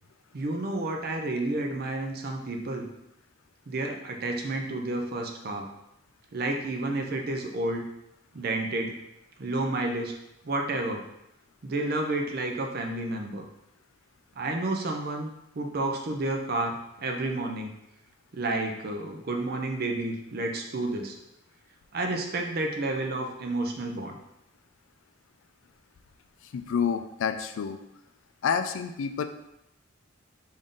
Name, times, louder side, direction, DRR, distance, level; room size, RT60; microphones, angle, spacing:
voice 1, 0.3-2.9 3.7-5.7 6.3-7.8 8.3-9.0 9.4-10.1 10.4-11.0 11.6-13.4 14.4-15.3 15.6-17.7 18.3-21.2 21.9-24.2, right 2 dB, 50° right, 3 dB, 0.5 m, -30 dB
voice 2, 26.4-27.8 28.4-29.2, left 7 dB, 70° left, 8 dB, 0.3 m, -28 dB
3.6 x 2.6 x 3.7 m, 0.85 s
head